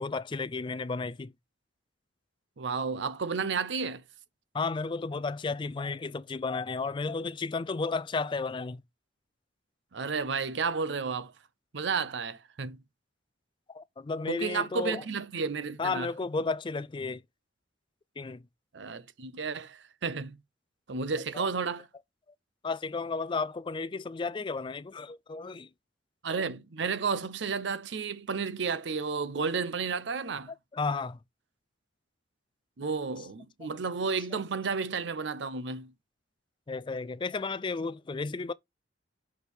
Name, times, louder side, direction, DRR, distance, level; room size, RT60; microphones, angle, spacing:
voice 1, 0.0-1.3 4.5-8.8 13.7-15.0 15.8-17.2 18.2-18.4 21.3-21.5 22.6-25.7 30.7-31.2 36.7-38.5, left 4 dB, 25° left, 0.3 m, -33 dB
voice 2, 2.6-4.0 9.9-11.3 11.7-12.8 14.3-16.1 18.7-20.4 20.9-21.9 26.2-30.5 32.8-35.9, right 5 dB, 65° right, 0.6 m, -32 dB
6.2 x 4.4 x 3.4 m
head